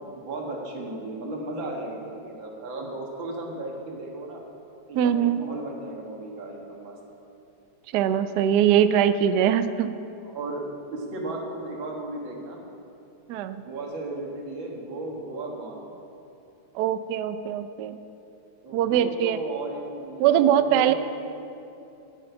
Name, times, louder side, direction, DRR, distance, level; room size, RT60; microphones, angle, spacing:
voice 1, 0.1-4.4 4.9-6.9 10.2-10.6 10.9-12.6 13.6-15.9 18.6-20.9, right 2 dB, 65° right, 0 dB, 2.4 m, -35 dB
voice 2, 5.0-5.4 7.9-9.9 13.3-13.6 16.7-18.0 18.7-19.4 20.2-20.9, right 10 dB, 90° right, 11 dB, 0.9 m, -22 dB
10.5 x 7.7 x 9.0 m, 2.8 s
omnidirectional pair, 2.4 m